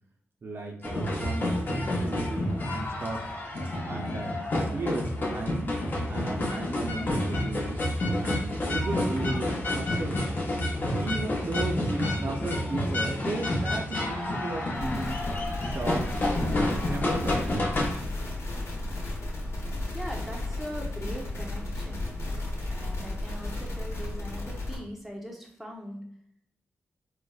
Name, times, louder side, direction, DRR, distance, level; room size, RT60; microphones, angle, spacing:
voice 1, 0.4-3.3 3.9-4.3 4.7-5.7 6.1-10.3 10.9-15.2 15.6-16.1 16.3-17.6, right 2 dB, 50° right, 0 dB, 0.5 m, -35 dB
sound 1, 0.8-18.0, left 1 dB, 40° left, 0.7 m, -29 dB
sound 2, 14.8-24.8, left 2 dB, 70° left, 1.0 m, -34 dB
voice 2, 19.9-22.1 22.3-26.0, equal, ahead, 0 dB, 0.6 m, -41 dB
3.9 x 2.1 x 2.3 m, 0.65 s
wide cardioid pair, 105°, 5 cm